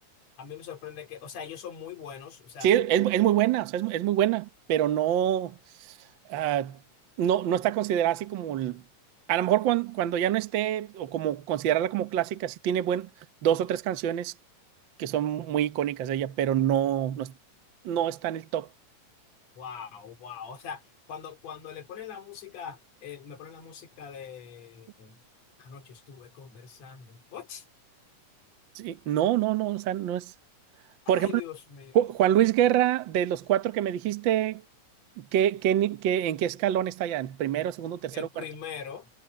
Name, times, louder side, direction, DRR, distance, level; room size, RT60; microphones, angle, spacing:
voice 1, 0.4-2.7 19.6-20.8 21.1-25.2 25.6-27.7 31.1-32.0 38.1-39.1, left 7 dB, 55° left, 3.7 m, -42 dB
voice 2, 2.6-5.5 6.3-6.8 7.2-8.8 9.3-13.1 13.4-14.3 15.0-17.3 17.8-18.7 28.7-30.3 31.1-31.3 31.9-34.6 35.2-38.3, right 11 dB, 90° right, 1.0 m, -26 dB
omnidirectional pair, 3.7 m